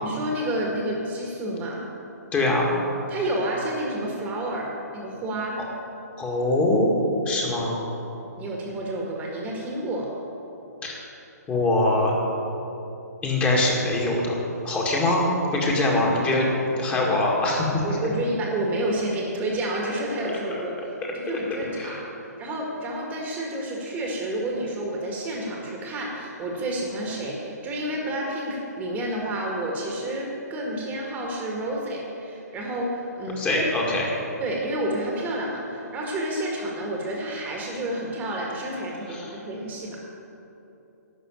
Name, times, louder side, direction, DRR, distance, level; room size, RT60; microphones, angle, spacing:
voice 1, 0.0-1.9 3.1-5.6 8.4-10.1 16.9-17.1 17.8-20.7 21.1-22.0 22.4-33.6 34.4-40.0, right 1 dB, 15° right, -1 dB, 1.7 m, -30 dB
voice 2, 2.3-2.7 6.2-7.0 7.3-7.8 10.8-10.9 11.5-12.1 13.2-15.2 15.5-16.5 16.8-18.0 20.5-21.1 21.8-22.0 33.4-34.2 39.1-39.4, left 2 dB, 15° left, -2 dB, 2.0 m, -23 dB
11.5 x 6.3 x 9.3 m, 2.9 s
figure-of-eight pair, 135°, 9 cm